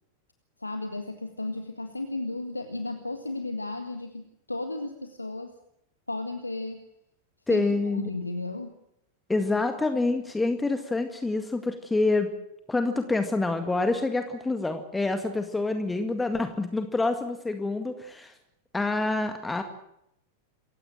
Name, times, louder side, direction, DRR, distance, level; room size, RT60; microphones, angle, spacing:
voice 1, 0.6-5.5 6.1-6.8 7.5-8.7, left 2 dB, 85° left, 7 dB, 1.8 m, -34 dB
voice 2, 7.5-8.1 9.3-12.3 12.7-18.3 18.7-19.6, left 3 dB, 10° left, 7 dB, 1.9 m, -27 dB
28.0 x 16.0 x 7.7 m, 0.78 s
figure-of-eight pair, 90°, 0 cm